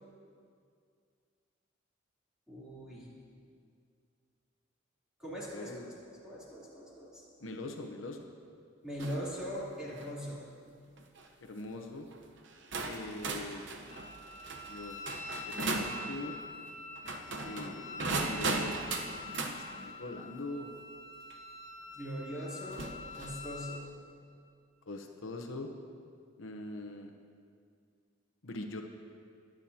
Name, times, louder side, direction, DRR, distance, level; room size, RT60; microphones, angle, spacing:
voice 1, 2.5-3.1 5.2-5.9 6.2-7.2 8.8-10.5 21.9-23.9, equal, 5° right, -9 dB, 3.2 m, -41 dB
voice 2, 5.5-5.9 7.4-8.3 11.4-12.1 12.9-13.6 14.6-15.0 15.5-16.3 17.4-18.9 19.3-20.7 24.9-25.7 26.4-27.1 28.4-28.8, left 2 dB, 80° left, 4 dB, 0.9 m, -42 dB
sound 1, 9.0-9.3 9.8-10.1 11.0-11.3 12.1-12.2 12.7-16.0 17.0-19.6 21.3-21.4 22.7-23.4, right 3 dB, 65° right, 0.9 m, -37 dB
Wind instrument woodwind instrument, 13.9-23.8, left 2 dB, 35° left, 0.8 m, -45 dB
22.0 x 9.1 x 2.8 m, 2.2 s
head